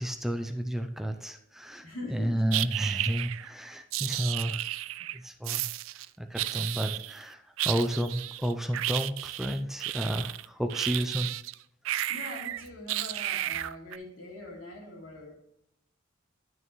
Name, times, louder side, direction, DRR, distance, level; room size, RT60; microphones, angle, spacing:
voice 1, 0.0-4.6 5.1-5.6 6.2-11.3, equal, ahead, 6 dB, 0.4 m, -31 dB
voice 2, 1.8-2.6 12.1-15.3, left 1 dB, 80° left, -3 dB, 3.0 m, -42 dB
sound 1, 2.5-3.5 3.9-5.2 5.4-6.1 6.4-7.2 7.6-11.5 11.8-14.0, right 15 dB, 75° right, 0.3 m, -33 dB
10.5 x 6.3 x 3.1 m, 0.79 s
head